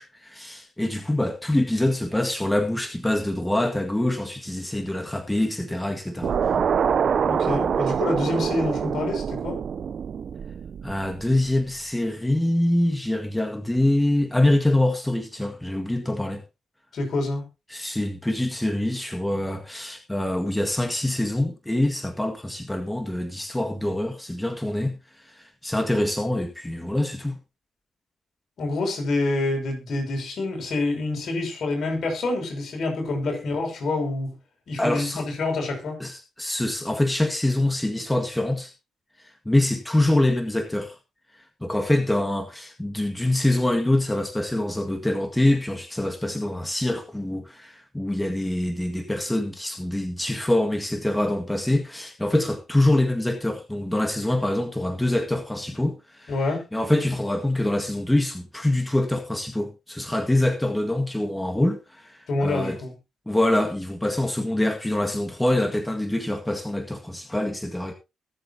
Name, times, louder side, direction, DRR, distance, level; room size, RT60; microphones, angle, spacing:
voice 1, 0.0-6.4 10.8-16.4 17.7-27.4 34.8-35.3 36.0-38.7 39.5-41.0 41.6-56.3 56.7-62.8 63.3-67.9, left 1 dB, 10° left, 1.9 m, -25 dB
sound 1, 6.2-11.5, right 7 dB, 60° right, 0.5 m, -25 dB
voice 2, 7.3-9.6 16.9-17.4 28.6-34.3 34.7-36.0 56.3-56.6 62.3-62.9, left 2 dB, 65° left, 6.0 m, -27 dB
22.0 x 7.8 x 2.8 m
supercardioid pair, 50°, 0 cm